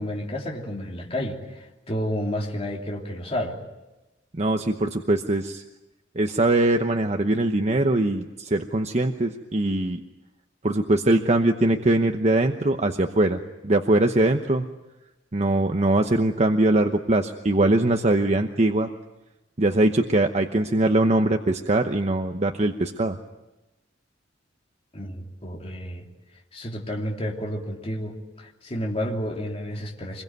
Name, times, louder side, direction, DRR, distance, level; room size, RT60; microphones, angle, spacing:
voice 1, 0.0-3.6 24.9-26.1 26.5-30.2, equal, 30° left, 0 dB, 3.0 m, -31 dB
voice 2, 4.4-5.6 6.2-10.0 10.6-14.7 15.3-18.9 19.6-23.2, right 2 dB, 35° right, 5 dB, 1.0 m, -22 dB
26.0 x 22.0 x 9.4 m, 1.0 s
head